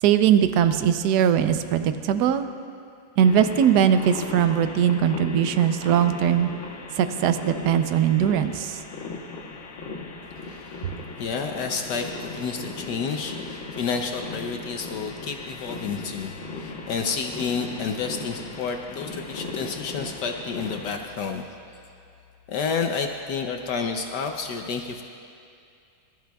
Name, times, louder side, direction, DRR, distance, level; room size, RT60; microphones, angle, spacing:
voice 1, 0.0-2.5 3.2-6.5 7.0-8.8, right 9 dB, 70° right, 10 dB, 1.0 m, -20 dB
sound 1, 3.2-21.0, left 3 dB, 85° left, 2.0 m, -37 dB
voice 2, 10.4-10.9 11.2-21.4 22.5-25.0, left 5 dB, 70° left, 4 dB, 1.1 m, -30 dB
23.5 x 13.0 x 2.3 m, 2.4 s
omnidirectional pair, 2.2 m